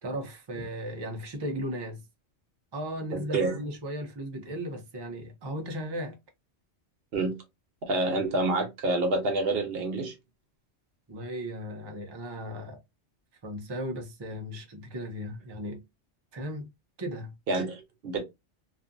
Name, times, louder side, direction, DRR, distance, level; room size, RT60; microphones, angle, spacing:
voice 1, 0.0-2.0 2.7-6.2 11.1-12.8 13.4-15.8 16.3-16.7 17.0-17.3, equal, 45° right, 0.3 m, -36 dB
voice 2, 3.1-3.6 7.1-7.4 7.8-10.1 17.5-18.2, right 2 dB, 60° right, 0.9 m, -28 dB
2.5 x 2.3 x 2.5 m
omnidirectional pair, 1.2 m